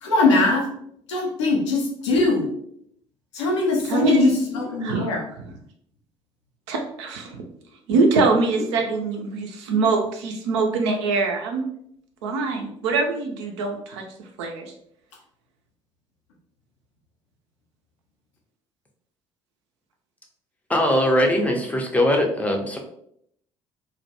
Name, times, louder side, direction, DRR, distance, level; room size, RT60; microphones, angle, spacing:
voice 1, 0.0-0.7 1.1-2.5 3.3-5.5, left 3 dB, 75° left, 0 dB, 0.6 m, -21 dB
voice 2, 3.9-4.2 4.8-5.1 6.7-7.4 7.9-11.6 12.2-14.0 14.4-14.7, right 3 dB, 70° right, 3 dB, 0.5 m, -23 dB
voice 3, 20.7-22.8, left 1 dB, 10° left, 2 dB, 0.6 m, -21 dB
2.2 x 2.1 x 2.8 m, 0.70 s
figure-of-eight pair, 55°, 15 cm